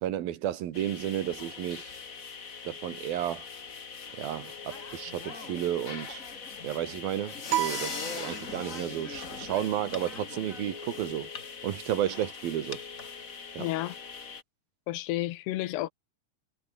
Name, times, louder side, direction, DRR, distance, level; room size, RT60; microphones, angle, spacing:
voice 1, 0.0-2.0 2.7-3.5 4.2-6.2 6.6-11.3 11.6-12.8 13.6-13.7, right 11 dB, 70° right, 3.5 m, -32 dB
sound 1, 0.7-14.4, left 5 dB, 65° left, 0.8 m, -42 dB
sound 2, 4.7-10.7, left 3 dB, 20° left, 2.7 m, -45 dB
sound 3, 7.5-8.9, right 14 dB, 90° right, 3.4 m, -33 dB
voice 2, 13.6-14.0 14.9-15.9, left 16 dB, 90° left, 3.2 m, -31 dB
omnidirectional pair, 4.6 m